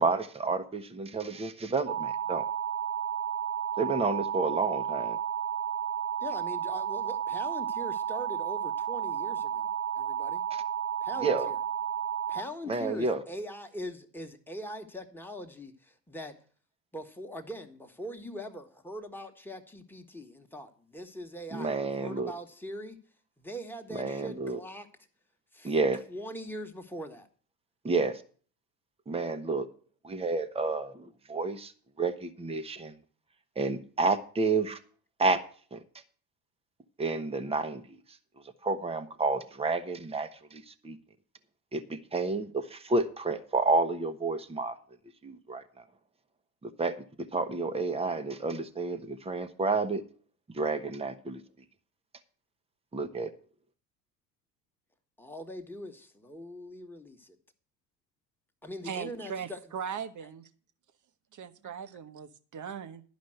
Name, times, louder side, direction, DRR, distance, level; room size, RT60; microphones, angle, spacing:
voice 1, 0.0-2.4 3.8-5.2 10.5-10.6 11.2-11.5 12.7-13.2 21.5-22.3 23.9-24.6 25.6-26.0 27.8-28.2 29.1-29.7 30.0-31.7 32.0-32.9 33.6-34.8 35.2-35.4 35.7-35.8 37.0-38.0 38.6-41.0 41.7-44.7 45.2-45.8 46.6-50.0 50.5-51.4 52.9-53.3, right 3 dB, 10° right, 8 dB, 1.0 m, -30 dB
sound 1, 1.9-12.4, right 9 dB, 70° right, 1.2 m, -32 dB
voice 2, 6.2-10.4 11.0-11.6 12.3-16.3 16.9-23.0 23.4-24.9 25.5-25.7 26.1-27.3 55.2-57.4 58.6-59.6 61.6-61.7, equal, 5° left, 4 dB, 1.5 m, -42 dB
voice 3, 58.8-60.4 61.3-63.0, right 7 dB, 35° right, 11 dB, 1.1 m, -39 dB
11.5 x 5.2 x 7.8 m, 0.43 s
hypercardioid pair, 75°, 50 cm